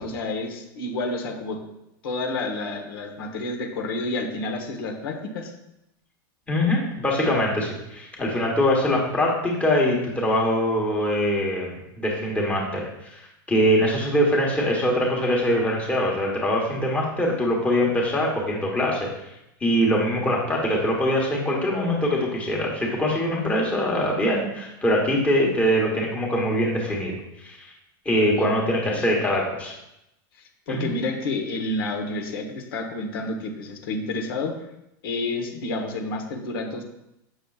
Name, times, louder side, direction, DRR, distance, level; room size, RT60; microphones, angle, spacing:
voice 1, 0.0-1.6 2.0-5.5 28.3-28.5 28.9-29.0 30.7-34.5 35.0-36.8, left 2 dB, 90° left, 2 dB, 1.3 m, -29 dB
voice 2, 6.5-12.8 13.1-13.2 13.5-19.1 19.6-27.2 28.0-29.7 30.7-30.8, equal, 10° left, -2 dB, 1.3 m, -23 dB
7.0 x 6.2 x 2.4 m, 0.85 s
supercardioid pair, 155°, 12 cm